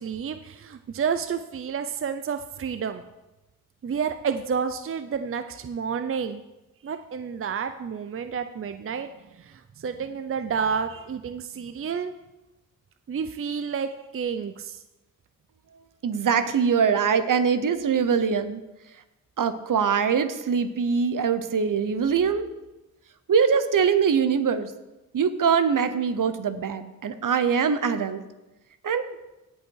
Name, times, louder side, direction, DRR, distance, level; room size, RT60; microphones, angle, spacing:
voice 1, 0.0-3.0 3.8-6.4 6.8-9.1 9.4-12.1 13.1-14.8, right 6 dB, 40° right, 9 dB, 0.5 m, -30 dB
voice 2, 16.0-18.6 19.4-22.5 23.3-24.7 25.1-28.2 28.8-29.0, right 6 dB, 65° right, 10 dB, 0.9 m, -23 dB
16.5 x 5.6 x 4.6 m, 1.0 s
wide cardioid pair, 85°, 34 cm